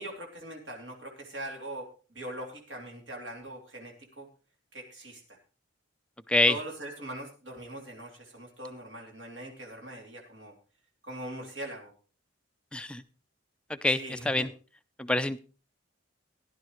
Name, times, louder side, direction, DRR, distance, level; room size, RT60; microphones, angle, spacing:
voice 1, 0.0-4.3 4.7-5.2 6.5-10.5 11.0-11.9 13.9-14.5, right 1 dB, 60° right, 0 dB, 2.8 m, -41 dB
voice 2, 12.7-13.0 13.7-14.5 15.0-15.4, left 2 dB, 5° left, 9 dB, 0.5 m, -26 dB
17.0 x 11.5 x 3.1 m, 0.34 s
head